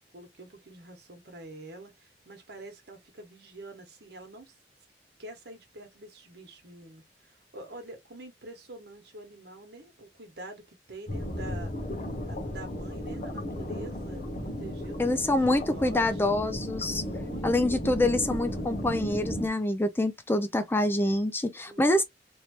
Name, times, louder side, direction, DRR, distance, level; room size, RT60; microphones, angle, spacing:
voice 1, 0.0-4.6 5.2-11.7 12.2-16.2 17.0-17.9 21.7-22.0, right 2 dB, 65° right, 1.2 m, -46 dB
sound 1, 11.1-19.5, equal, 40° left, 0.8 m, -35 dB
voice 2, 15.0-17.0 17.4-22.0, left 1 dB, 15° left, 0.4 m, -26 dB
3.1 x 2.9 x 2.9 m
head